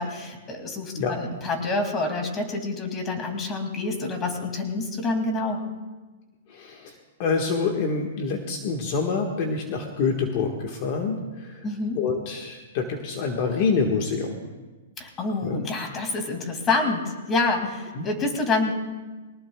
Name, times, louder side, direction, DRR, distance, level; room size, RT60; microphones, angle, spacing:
voice 1, 0.0-5.6 11.6-12.0 15.0-18.7, left 3 dB, 20° left, 3 dB, 2.6 m, -27 dB
voice 2, 6.5-6.9 7.2-11.6 11.9-14.4 15.4-15.6 17.9-18.1, left 5 dB, 45° left, 1 dB, 1.6 m, -26 dB
23.0 x 18.5 x 2.4 m, 1.2 s
hypercardioid pair, 150°, 0 cm